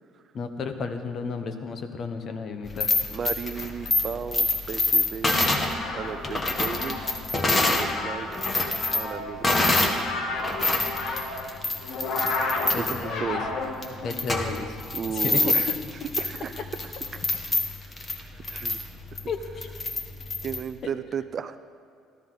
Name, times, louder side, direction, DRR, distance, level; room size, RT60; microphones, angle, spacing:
voice 1, 0.3-2.9 12.7-13.4 14.0-14.8 15.1-15.5 19.3-19.7, left 5 dB, 45° left, 7 dB, 1.2 m, -33 dB
sound 1, 2.7-7.9 8.2-10.0 10.4-20.6, left 2 dB, 20° left, 1.4 m, -26 dB
voice 2, 3.1-7.2 7.6-8.3 8.9-9.6 12.8-13.4 14.9-15.7 16.2-16.7 18.3-18.8 20.4-21.6, right 7 dB, 40° right, 12 dB, 0.5 m, -34 dB
sound 2, 5.4-14.1, left 3 dB, 60° left, 1.8 m, -33 dB
18.5 x 13.5 x 4.1 m, 2.4 s
cardioid pair, 130°, 0 cm